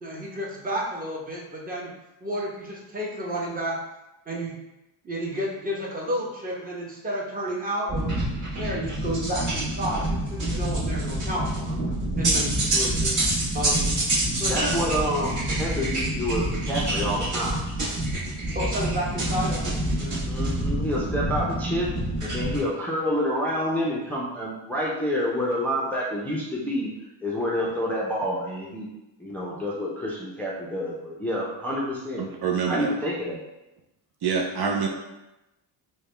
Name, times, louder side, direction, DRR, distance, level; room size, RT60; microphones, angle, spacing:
voice 1, 0.0-1.9 2.2-3.8 4.3-4.5 5.0-8.1 8.5-11.8 12.2-13.2 13.5-13.9 14.3-14.8 18.5-20.2, equal, 20° right, -3 dB, 0.9 m, -31 dB
sound 1, 7.9-22.6, right 1 dB, 40° right, 1.4 m, -27 dB
voice 2, 14.5-17.6 20.3-21.9 22.2-26.9 27.2-28.9 29.2-32.3 32.7-33.4, equal, 5° left, -5 dB, 0.5 m, -28 dB
voice 3, 32.2-32.9 34.2-34.9, right 6 dB, 55° right, 1 dB, 0.5 m, -26 dB
4.7 x 2.3 x 3.2 m, 0.97 s
cardioid pair, 120°, 47 cm